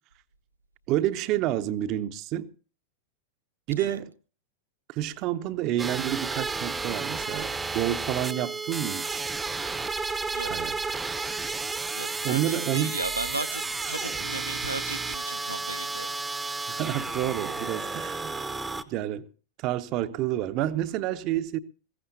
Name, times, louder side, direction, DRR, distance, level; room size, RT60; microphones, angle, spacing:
voice 1, 0.9-2.5 3.7-4.1 4.9-9.3 10.4-10.8 12.2-13.0 16.7-18.3 18.9-19.3 19.6-21.6, right 13 dB, 40° right, 0.8 m, -29 dB
sound 1, 5.8-18.8, right 3 dB, 10° right, 0.9 m, -32 dB
voice 2, 11.9-16.1, right 2 dB, 80° right, 0.8 m, -36 dB
21.0 x 16.0 x 2.8 m
figure-of-eight pair, 90°, 0 cm